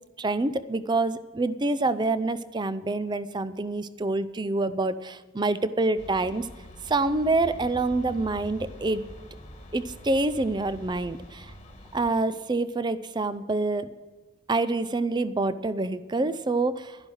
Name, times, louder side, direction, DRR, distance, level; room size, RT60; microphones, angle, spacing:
voice 1, 0.2-6.5 6.9-9.0 9.7-11.5 11.9-13.9 14.5-17.0, right 2 dB, 20° right, 14 dB, 0.5 m, -26 dB
sound 1, 6.0-12.1, left 1 dB, 30° left, 1.5 m, -45 dB
11.5 x 11.0 x 6.2 m, 1.3 s
head